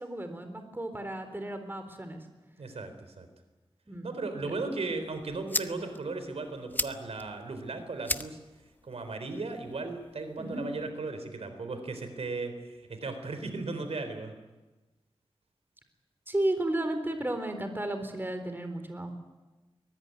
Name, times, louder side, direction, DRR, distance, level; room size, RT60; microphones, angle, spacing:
voice 1, 0.0-2.3 3.9-4.1 4.4-4.5 10.4-10.7 16.3-19.1, right 1 dB, 20° right, 7 dB, 3.9 m, -33 dB
voice 2, 2.6-3.3 4.0-8.4 8.8-14.3, right 3 dB, 85° right, 8 dB, 3.8 m, -36 dB
sound 1, 4.9-10.9, left 1 dB, 20° left, 1.0 m, -39 dB
23.5 x 19.5 x 9.5 m, 1.2 s
wide cardioid pair, 80°, 10 cm